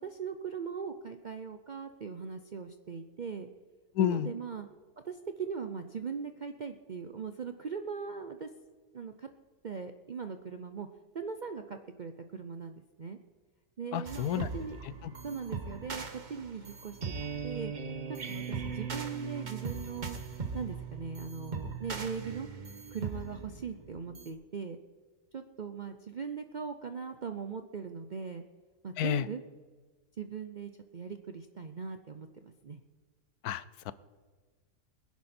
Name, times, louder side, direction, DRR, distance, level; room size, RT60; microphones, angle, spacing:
voice 1, 0.0-3.5 4.0-4.7 5.0-8.5 8.9-9.3 9.6-10.9 11.1-13.2 13.8-14.8 15.2-17.0 17.4-17.7 18.1-20.2 20.5-22.5 22.9-24.8 25.3-28.4 28.8-29.4 30.2-32.8, right 6 dB, 55° right, 7 dB, 0.5 m, -40 dB
voice 2, 4.0-4.3 13.9-14.5 29.0-29.3 33.4-33.9, left 10 dB, 80° left, 17 dB, 1.1 m, -30 dB
sound 1, 14.1-24.3, right 5 dB, 35° right, 1.0 m, -39 dB
21.5 x 10.5 x 4.3 m, 1.4 s
omnidirectional pair, 1.6 m